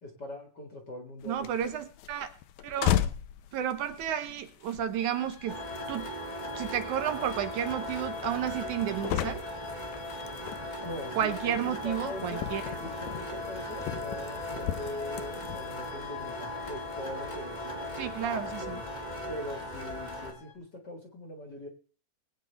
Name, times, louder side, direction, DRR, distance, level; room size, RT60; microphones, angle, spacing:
voice 1, 0.0-1.5 10.8-12.5 12.8-18.1 18.6-18.8 19.3-21.7, left 1 dB, 40° left, 3 dB, 1.9 m, -42 dB
sound 1, 1.2-15.9, left 11 dB, 75° left, 2.0 m, -37 dB
voice 2, 1.3-2.3 2.6-2.9 3.5-5.6 5.9-6.1 6.6-9.4 11.2-12.6 18.0-18.8, right 9 dB, 70° right, 9 dB, 2.2 m, -32 dB
sound 2, 5.0-20.6, left 6 dB, 60° left, 2.4 m, -51 dB
sound 3, 5.5-20.3, left 1 dB, 20° left, 1.1 m, -38 dB
20.5 x 9.0 x 3.4 m, 0.39 s
omnidirectional pair, 3.8 m